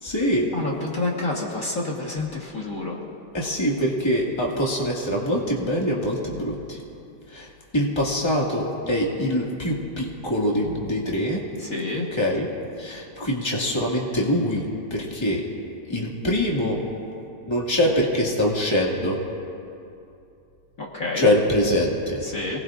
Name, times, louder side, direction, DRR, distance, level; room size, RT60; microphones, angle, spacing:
voice 1, 0.0-0.5 3.3-6.8 7.3-11.4 12.1-12.5 12.8-15.4 15.9-16.8 17.5-19.2 21.1-22.2, equal, 15° left, -3 dB, 2.0 m, -24 dB
voice 2, 0.5-3.0 11.6-12.1 20.8-21.3 22.2-22.6, left 2 dB, 50° left, -3 dB, 2.0 m, -28 dB
28.0 x 19.5 x 2.5 m, 2.7 s
omnidirectional pair, 1.9 m